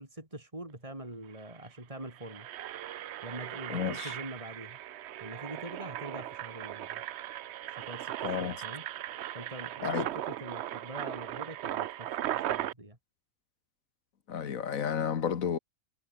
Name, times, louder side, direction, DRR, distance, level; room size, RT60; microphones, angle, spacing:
voice 1, 0.0-2.5 3.2-4.8 5.2-7.0 7.7-8.8 9.3-13.0, right 1 dB, 25° right, 4.4 m, -44 dB
Engine, 1.0-1.1 1.3-1.6 2.0-12.7, right 12 dB, 65° right, 0.7 m, -38 dB
voice 2, 3.7-4.1 8.2-8.6 9.8-10.1 14.3-15.6, left 7 dB, 70° left, 1.8 m, -31 dB
omnidirectional pair, 1.5 m